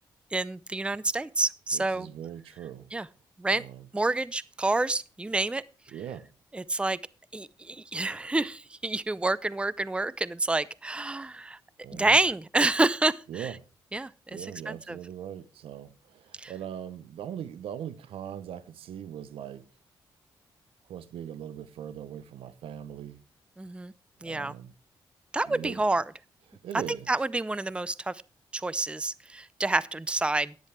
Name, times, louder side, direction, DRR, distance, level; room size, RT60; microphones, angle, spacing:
voice 1, 0.3-2.1 2.9-3.1 3.4-3.6 3.9-5.6 6.5-7.0 7.3-11.6 11.9-13.5 13.9-14.4 14.7-15.0 16.4-16.5 23.6-23.9 24.2-24.5 25.3-26.0 27.1-28.2 28.5-30.5, right 2 dB, 10° right, 0.5 m, -28 dB
voice 2, 1.7-2.9 3.5-3.9 5.9-6.3 11.8-12.2 13.3-13.6 14.3-19.7 20.9-23.2 24.2-24.7 25.5-25.8 26.5-27.1, right 9 dB, 80° right, 0.8 m, -40 dB
10.5 x 9.5 x 4.5 m
cardioid pair, 65°, 9 cm